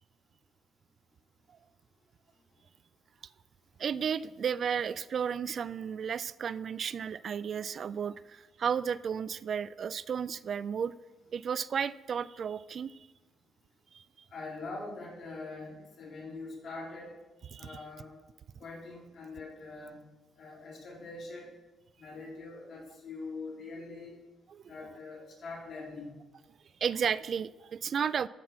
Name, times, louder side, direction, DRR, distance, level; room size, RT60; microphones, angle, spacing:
voice 1, 3.8-10.9 11.3-13.1 13.9-14.0 17.5-17.8 24.5-24.6 26.8-28.3, right 7 dB, 55° right, 18 dB, 0.3 m, -33 dB
voice 2, 14.3-17.2 17.6-18.2 18.6-20.0 20.4-21.5 22.0-24.2 24.7-26.2, left 3 dB, 55° left, -3 dB, 3.9 m, -43 dB
13.5 x 5.8 x 6.0 m, 1.1 s
cardioid pair, 90°, 0 cm